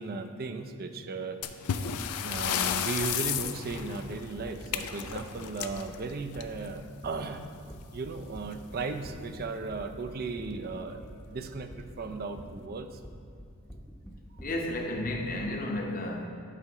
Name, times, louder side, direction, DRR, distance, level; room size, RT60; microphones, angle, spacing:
voice 1, 0.0-1.4 2.2-7.4 7.9-11.0 11.3-13.0, right 3 dB, 45° right, 8 dB, 0.5 m, -36 dB
sound 1, 1.4-6.8 8.1-8.2 8.5-8.6 9.3-9.4 10.0-10.3, left 8 dB, 85° left, 0.4 m, -33 dB
sound 2, 2.0-15.6, equal, 5° left, 0.8 m, -47 dB
voice 2, 14.4-16.3, left 1 dB, 40° left, 2 dB, 0.8 m, -32 dB
11.0 x 5.5 x 3.0 m, 2.5 s
head